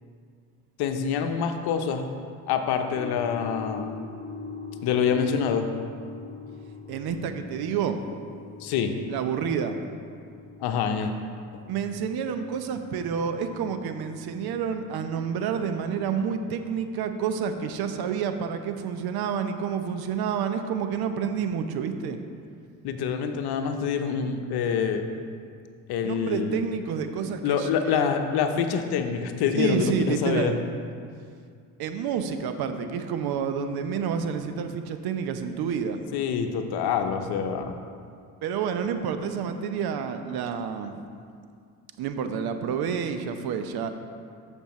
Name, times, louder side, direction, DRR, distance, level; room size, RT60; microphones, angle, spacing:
voice 1, 0.8-2.1 2.5-3.9 4.8-5.7 8.6-8.9 10.6-11.1 22.8-25.0 25.9-26.6 27.4-30.6 36.1-37.7, left 7 dB, 60° left, 6 dB, 0.9 m, -26 dB
sound 1, 2.9-16.6, left 4 dB, 20° left, 1.4 m, -43 dB
voice 2, 6.9-8.0 9.1-9.8 11.7-22.2 26.0-28.2 29.5-30.5 31.8-36.0 38.4-41.1 42.0-43.9, right 7 dB, 60° right, 8 dB, 0.8 m, -29 dB
13.5 x 5.4 x 3.1 m, 2.2 s
hypercardioid pair, 55°, 43 cm